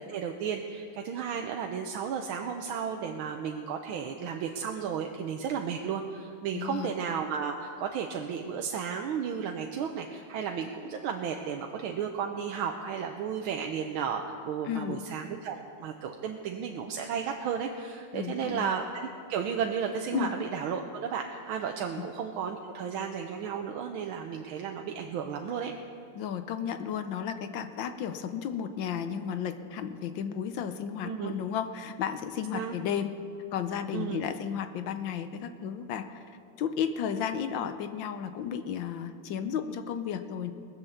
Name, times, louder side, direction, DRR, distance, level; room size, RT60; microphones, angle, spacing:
voice 1, 0.1-25.7 31.0-31.3 32.5-32.7 33.9-34.2, right 7 dB, 80° right, 3 dB, 1.6 m, -33 dB
voice 2, 6.5-6.9 14.6-15.0 18.1-18.7 20.1-20.3 26.1-33.1 33.5-36.2 36.6-40.5, left 8 dB, 70° left, 9 dB, 1.4 m, -33 dB
20.0 x 8.2 x 7.1 m, 2.4 s
omnidirectional pair, 2.3 m